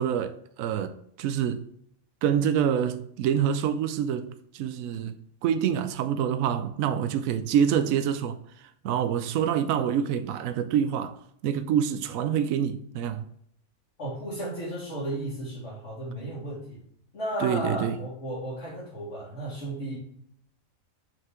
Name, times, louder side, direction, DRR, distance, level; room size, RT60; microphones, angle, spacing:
voice 1, 0.0-1.7 2.2-5.1 5.4-11.2 11.4-13.3 17.4-18.0, right 8 dB, 80° right, 1.0 m, -26 dB
voice 2, 14.0-16.8 17.1-20.0, right 1 dB, 55° left, 2.4 m, -34 dB
5.8 x 5.4 x 3.6 m
omnidirectional pair, 1.4 m